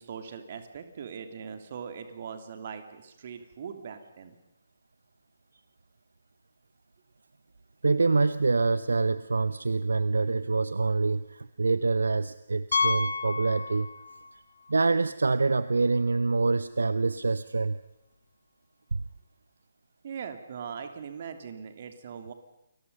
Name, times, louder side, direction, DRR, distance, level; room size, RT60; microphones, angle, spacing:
voice 1, 0.0-4.4 20.0-22.3, right 7 dB, 40° right, 8 dB, 3.0 m, -40 dB
voice 2, 7.8-13.9 14.7-17.8, right 3 dB, 65° right, 15 dB, 0.8 m, -26 dB
Piano, 12.7-14.3 14.6-14.7 15.3-15.4 15.7-15.8 17.8-17.9, left 4 dB, 55° left, 1.9 m, -30 dB
29.5 x 22.0 x 5.5 m, 0.94 s
figure-of-eight pair, 140°, 0 cm